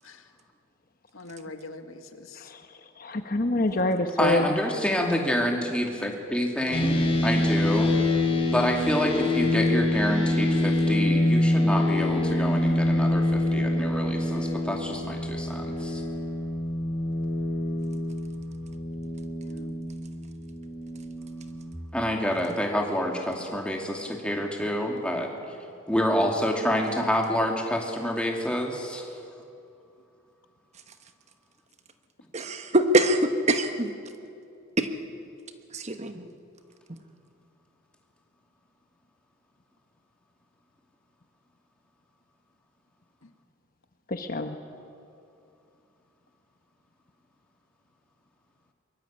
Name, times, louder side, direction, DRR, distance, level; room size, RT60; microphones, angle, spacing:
voice 1, 1.1-2.5 6.7-7.3 19.4-19.8, left 2 dB, 80° left, 7 dB, 1.9 m, -42 dB
voice 2, 2.3-4.6 44.1-44.6, left 2 dB, 45° left, 6 dB, 1.0 m, -27 dB
voice 3, 4.2-8.0 8.5-16.0 21.9-25.5 25.9-29.1, equal, 5° left, 1 dB, 2.5 m, -27 dB
sound 1, 6.7-21.8, left 1 dB, 30° left, 3.1 m, -26 dB
voice 4, 32.3-33.9 34.8-34.9 35.7-36.3, right 1 dB, 35° right, 8 dB, 1.2 m, -24 dB
22.5 x 22.5 x 8.8 m, 2.6 s
head